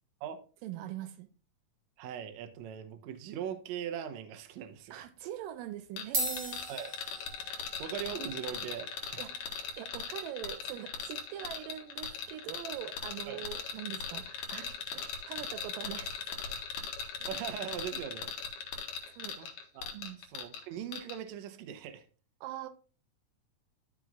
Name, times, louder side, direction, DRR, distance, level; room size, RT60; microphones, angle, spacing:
voice 1, 0.6-1.3 4.9-6.6 9.2-9.5 9.8-16.3 19.1-19.4 19.9-20.2 22.4-22.7, right 11 dB, 85° right, 2.2 m, -42 dB
voice 2, 2.0-5.0 6.7-6.9 7.5-9.2 13.3-13.4 17.2-18.3 19.4-19.5 19.7-19.9 20.3-22.1, right 9 dB, 70° right, 1.9 m, -40 dB
sound 1, 4.5-4.8 5.6-5.7 6.0-14.7, right 2 dB, 40° right, 1.2 m, -43 dB
sound 2, 6.0-20.6 20.9-21.2, left 6 dB, 75° left, 2.7 m, -39 dB
12.0 x 6.1 x 2.4 m
omnidirectional pair, 4.0 m